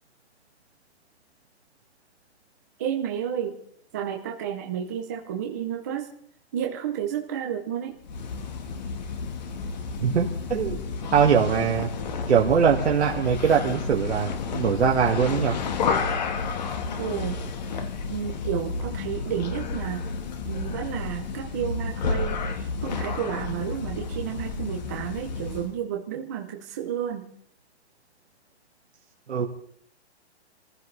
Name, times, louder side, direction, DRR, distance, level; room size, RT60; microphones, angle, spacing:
voice 1, 2.8-3.6 3.9-6.1 6.5-8.0 17.0-17.4 18.1-20.1 20.4-27.3, right 9 dB, 15° right, 2 dB, 0.7 m, -31 dB
sound 1, 8.0-25.8, left 4 dB, 40° left, 1.6 m, -31 dB
voice 2, 10.0-10.8 11.1-11.9 12.3-15.6 29.3-29.5, right 7 dB, 80° right, -1 dB, 2.1 m, -22 dB
26.0 x 15.0 x 3.4 m, 0.63 s
hypercardioid pair, 175°, 33 cm